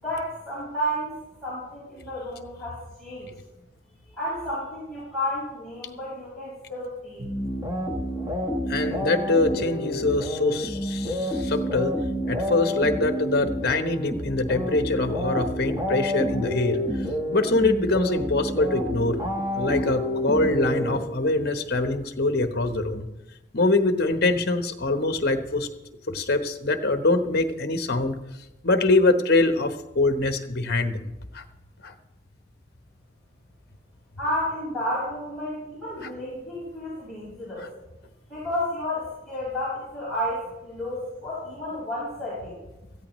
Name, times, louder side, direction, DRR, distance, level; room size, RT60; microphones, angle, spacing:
voice 1, 0.0-3.3 4.1-7.3 34.2-37.7 38.3-42.5, equal, ahead, -12 dB, 5.0 m, -31 dB
sound 1, 7.2-21.5, equal, 15° right, 1.3 m, -29 dB
voice 2, 8.7-11.9 12.3-16.8 17.3-19.2 19.5-23.1 23.5-25.7 26.1-28.1 28.6-31.4 31.8-31.9 36.0-36.1, left 2 dB, 50° left, 8 dB, 1.0 m, -24 dB
17.5 x 14.0 x 3.1 m, 0.98 s
head